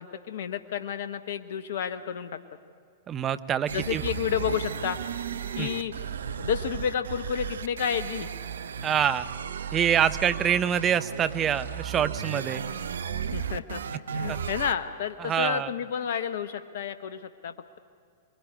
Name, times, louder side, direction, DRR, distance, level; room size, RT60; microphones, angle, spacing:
voice 1, 0.0-2.3 3.7-5.0 5.6-5.9 6.4-8.3 13.1-17.8, left 8 dB, 55° left, 10 dB, 1.0 m, -31 dB
voice 2, 3.1-4.0 5.6-5.7 8.8-9.3 9.7-12.6 14.3-14.4 15.2-15.7, right 9 dB, 25° right, 13 dB, 0.8 m, -26 dB
sound 1, 3.7-14.7, right 7 dB, 65° right, 0.8 m, -34 dB
26.5 x 21.5 x 9.9 m, 2.4 s
figure-of-eight pair, 100°, 0 cm